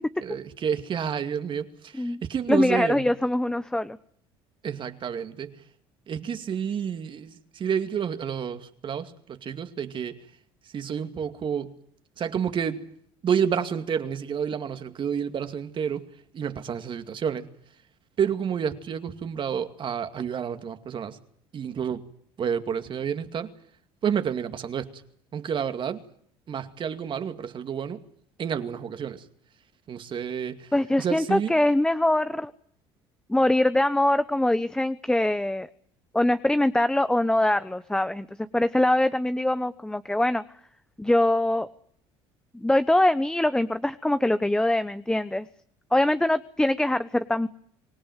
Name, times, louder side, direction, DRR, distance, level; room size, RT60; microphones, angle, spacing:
voice 1, 0.2-3.0 4.6-5.6 6.1-10.2 10.7-11.8 12.2-12.8 13.2-16.1 16.3-17.5 18.2-21.2 21.5-22.0 22.4-23.5 24.0-25.0 25.3-26.0 26.5-28.0 28.4-29.2 29.9-30.7 31.0-31.5, right 7 dB, 45° right, 2.3 m, -29 dB
voice 2, 2.5-4.0 30.7-32.5 33.3-35.7 36.1-38.3 38.5-40.4 41.0-41.7 42.5-45.5 45.9-47.5, left 1 dB, 5° left, 1.0 m, -23 dB
26.0 x 17.5 x 9.3 m
supercardioid pair, 95°, 12 cm